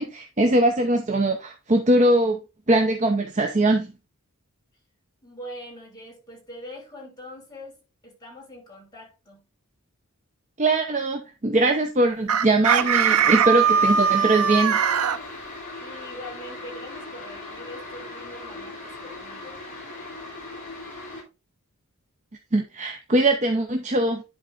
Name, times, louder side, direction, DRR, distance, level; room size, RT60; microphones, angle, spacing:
voice 1, 0.0-2.4 2.7-3.9 10.6-14.8 22.5-24.2, right 2 dB, 35° right, 0.7 m, -21 dB
voice 2, 5.2-9.4 15.8-19.6, equal, 20° left, 3.6 m, -42 dB
Chicken rooster, 12.3-15.2, right 7 dB, 85° right, 0.7 m, -20 dB
sound 1, 12.8-21.2, left 2 dB, 35° left, 3.5 m, -39 dB
10.5 x 4.0 x 3.9 m
head